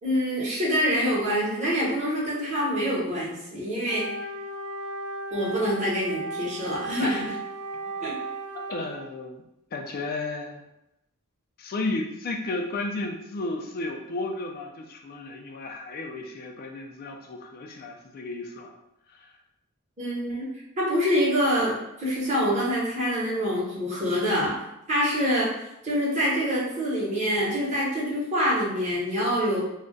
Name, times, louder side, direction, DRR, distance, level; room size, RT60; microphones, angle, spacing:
voice 1, 0.0-4.1 5.3-7.3 8.0-8.1 20.0-20.5 20.8-24.5 24.9-25.5 25.8-29.6, equal, 30° right, -7 dB, 0.9 m, -25 dB
Wind instrument woodwind instrument, 3.8-9.0, right 2 dB, 55° right, 0.6 m, -35 dB
voice 2, 8.5-9.4 9.7-10.6 11.6-18.7 19.1-19.3, left 2 dB, 45° left, 3 dB, 0.4 m, -33 dB
2.3 x 2.1 x 3.8 m, 0.84 s
head